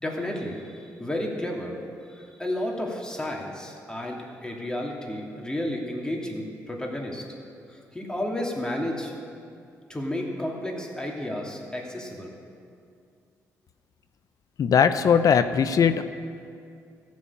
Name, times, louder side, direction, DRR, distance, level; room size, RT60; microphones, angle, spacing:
voice 1, 0.0-1.7 2.1-7.2 7.7-9.1 9.9-12.3, left 1 dB, 10° left, -2 dB, 2.8 m, -32 dB
voice 2, 14.6-16.0, left 7 dB, 60° left, 10 dB, 0.6 m, -19 dB
14.0 x 6.4 x 8.5 m, 2.4 s
supercardioid pair, 55°, 7 cm